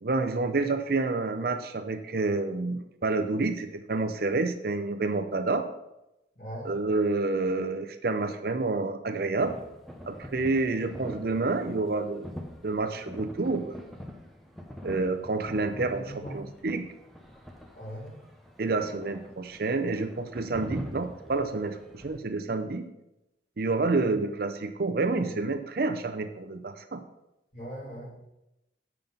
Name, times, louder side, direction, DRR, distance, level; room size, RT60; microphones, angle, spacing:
voice 1, 0.0-5.7 6.6-9.6 10.1-12.3 12.6-13.8 14.8-16.8 18.6-22.9 23.6-27.0, right 3 dB, 50° right, 8 dB, 0.5 m, -29 dB
voice 2, 6.3-6.8 10.6-10.9 15.5-16.4 17.8-18.2 23.9-24.1 27.5-28.1, equal, 45° left, -5 dB, 3.4 m, -40 dB
sound 1, 9.4-22.2, equal, ahead, 0.7 m, -44 dB
7.6 x 5.7 x 5.2 m, 0.91 s
head